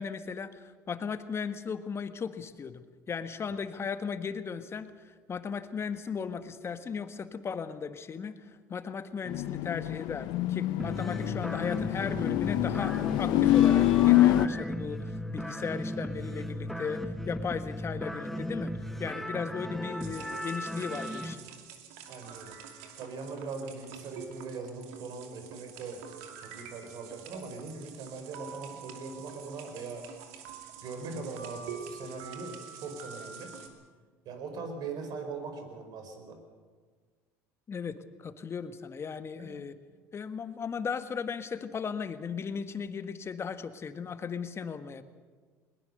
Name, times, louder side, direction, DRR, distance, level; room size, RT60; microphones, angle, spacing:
voice 1, 0.0-18.7 19.0-21.5 37.7-39.7 40.1-45.0, left 6 dB, 35° left, 10 dB, 1.5 m, -36 dB
sound 1, 9.3-14.5, left 14 dB, 70° left, 0.8 m, -25 dB
sound 2, 10.8-21.3, equal, 5° left, 1.3 m, -36 dB
sound 3, 20.0-33.7, right 7 dB, 80° right, 2.5 m, -46 dB
voice 2, 22.1-30.1 30.8-33.5 34.2-36.4 39.4-39.6, right 4 dB, 60° right, 6 dB, 4.7 m, -41 dB
21.0 x 20.0 x 6.6 m, 1.5 s
supercardioid pair, 85°, 8 cm